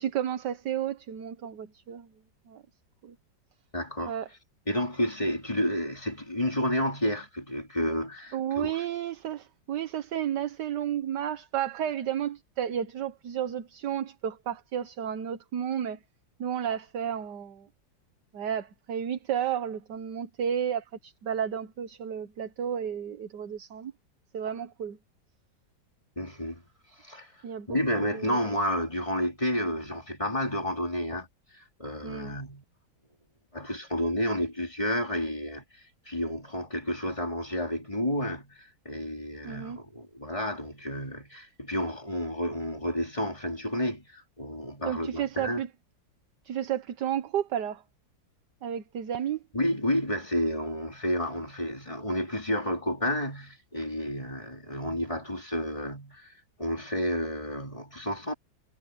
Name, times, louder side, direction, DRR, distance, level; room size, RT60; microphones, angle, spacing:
voice 1, 0.0-2.1 2.5-2.6 3.0-3.2 4.1-4.3 8.3-16.0 16.4-17.7 18.3-23.9 24.3-25.0 27.4-27.8 28.1-28.4 32.0-32.4 39.4-39.8 44.9-45.7 46.5-47.8 48.6-49.4, right 9 dB, 65° right, 1.6 m, -32 dB
voice 2, 3.7-4.2 4.7-8.8 26.2-26.6 27.0-27.3 27.7-31.3 31.5-32.6 33.5-45.6 49.5-56.3 56.6-58.3, equal, 15° left, 3.8 m, -31 dB
omnidirectional pair, 2.0 m